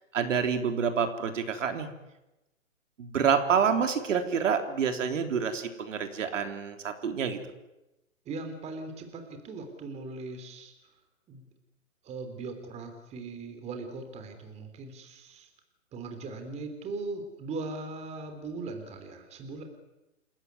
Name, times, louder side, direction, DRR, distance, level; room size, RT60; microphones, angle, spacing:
voice 1, 0.1-1.9 3.0-7.4, right 6 dB, 65° right, 6 dB, 3.7 m, -27 dB
voice 2, 8.2-10.7 11.3-11.4 12.0-15.5 15.9-19.6, right 3 dB, 15° right, 6 dB, 3.3 m, -39 dB
28.5 x 16.5 x 9.6 m, 0.97 s
hypercardioid pair, 145°, 41 cm